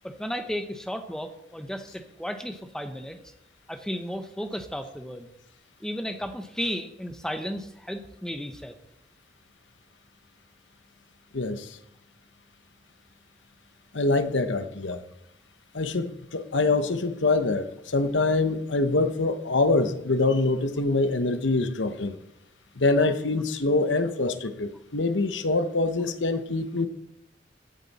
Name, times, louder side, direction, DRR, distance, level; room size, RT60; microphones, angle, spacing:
voice 1, 0.0-3.2 3.7-5.3 5.8-8.7, equal, 5° left, 7 dB, 1.0 m, -34 dB
voice 2, 11.3-11.8 13.9-15.0 15.7-22.1 22.8-26.9, left 3 dB, 85° left, 10 dB, 1.0 m, -25 dB
16.5 x 8.1 x 4.2 m, 0.80 s
head